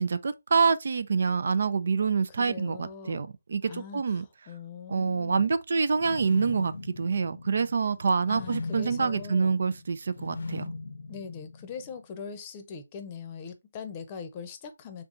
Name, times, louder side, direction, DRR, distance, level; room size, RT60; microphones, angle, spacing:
voice 1, 0.0-4.3 4.9-10.7, right 5 dB, 55° right, 0.4 m, -26 dB
voice 2, 2.4-3.3 3.7-5.5 8.3-9.5 11.1-15.0, left 6 dB, 25° left, 0.7 m, -41 dB
sound 1, 5.9-12.0, left 3 dB, 65° left, 0.7 m, -40 dB
3.6 x 3.5 x 3.8 m
figure-of-eight pair, 155°, 0 cm